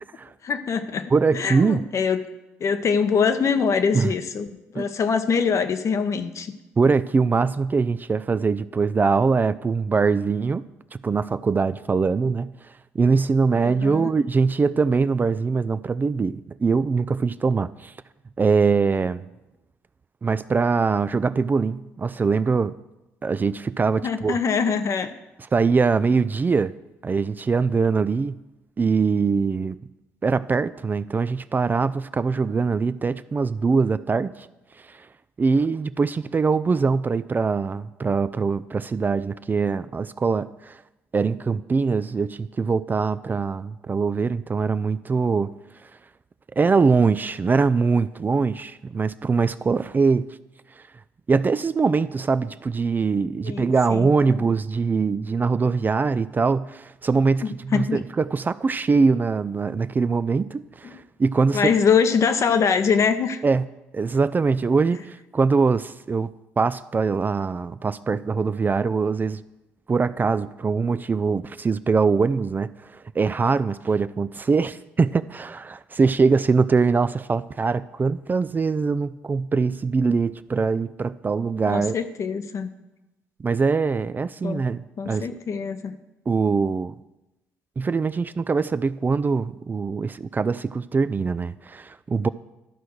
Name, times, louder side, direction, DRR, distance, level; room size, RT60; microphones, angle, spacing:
voice 1, 0.4-2.2 2.6-4.5 4.7-6.5 13.6-14.1 24.0-25.1 53.4-54.4 57.4-58.0 60.8-61.0 61.5-63.4 81.7-82.7 84.4-84.6 85.0-86.0, left 6 dB, 50° left, 9 dB, 0.8 m, -23 dB
voice 2, 1.1-1.8 3.9-4.1 4.8-4.9 6.8-10.7 10.9-12.5 12.9-17.9 18.4-19.2 20.2-22.7 23.2-24.4 25.5-26.7 27.0-28.4 28.8-29.8 30.2-34.5 34.9-35.1 35.4-40.8 41.1-45.5 46.6-50.3 51.3-61.7 63.4-63.7 63.9-69.4 69.9-82.0 83.4-85.3 86.3-86.9 87.8-92.3, right 4 dB, 30° right, 14 dB, 0.4 m, -22 dB
11.5 x 4.5 x 6.4 m, 1.0 s
hypercardioid pair, 50°, 7 cm